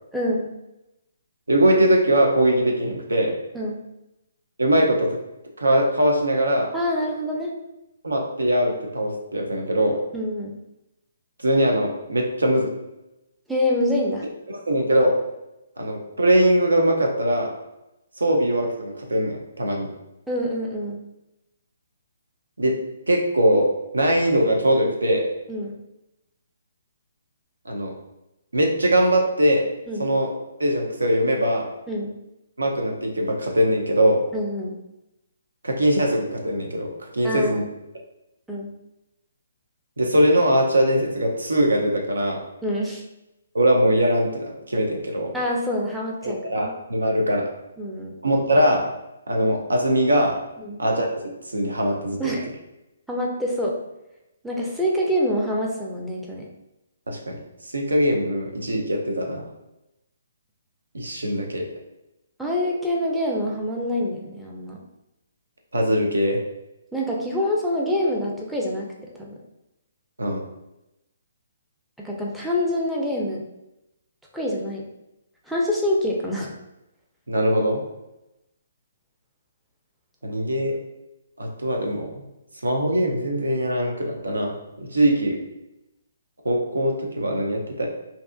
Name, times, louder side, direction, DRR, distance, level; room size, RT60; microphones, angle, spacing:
voice 1, 0.1-0.5 3.5-3.8 6.7-7.5 10.1-10.6 13.5-14.3 20.3-21.0 25.5-25.8 29.9-30.1 31.9-32.2 34.3-34.8 37.2-37.7 38.5-38.7 42.6-43.0 45.3-46.7 47.1-47.2 47.8-48.1 50.6-50.8 52.2-52.5 53.1-53.8 54.4-56.5 62.4-64.8 66.9-69.4 72.0-73.4 74.3-74.9 75.5-76.5, left 1 dB, ahead, -4 dB, 0.4 m, -26 dB
voice 2, 1.5-3.3 4.6-5.2 5.6-6.7 8.0-10.0 11.4-12.7 14.7-15.2 15.8-17.5 18.2-19.9 22.6-22.7 23.1-23.7 23.9-25.2 27.7-27.9 28.5-29.7 30.0-30.3 30.6-31.7 32.6-34.2 35.6-37.6 40.0-42.4 43.5-45.3 46.2-47.5 48.2-48.9 49.3-50.4 50.8-51.1 51.5-52.3 57.1-57.4 57.7-59.5 60.9-61.7 65.7-66.4 70.2-70.4 77.3-77.8 80.2-80.8 81.4-82.2 82.6-85.4 86.4-87.9, right 1 dB, 85° right, 1 dB, 0.6 m, -21 dB
2.6 x 2.3 x 2.3 m, 0.91 s
hypercardioid pair, 140°, 0 cm